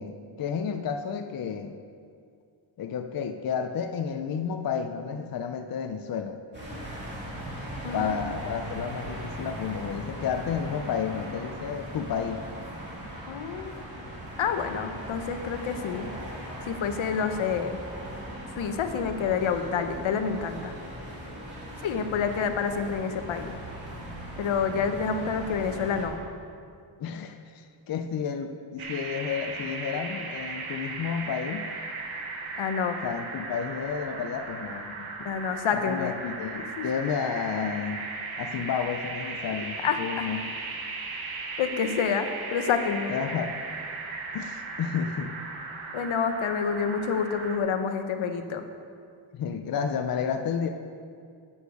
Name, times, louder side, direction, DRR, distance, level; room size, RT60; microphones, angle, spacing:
voice 1, 0.0-1.8 2.8-6.4 7.9-12.4 27.0-31.7 33.0-35.1 35.7-38.1 38.4-40.5 43.1-43.5 44.3-45.4 49.3-50.7, left 7 dB, 50° left, 6 dB, 0.5 m, -31 dB
sound 1, 6.5-26.1, right 1 dB, 20° right, 2.7 m, -39 dB
voice 2, 7.8-8.2 13.3-14.0 14.4-16.1 16.7-17.8 18.5-20.7 21.8-23.5 24.4-26.2 32.6-33.0 35.2-36.1 36.6-36.9 39.8-40.3 41.6-43.1 45.9-48.6, left 6 dB, 80° left, 8 dB, 0.9 m, -28 dB
sound 2, 28.8-47.6, right 3 dB, 85° right, 1.5 m, -37 dB
9.4 x 8.7 x 5.2 m, 2.3 s
wide cardioid pair, 165°, 47 cm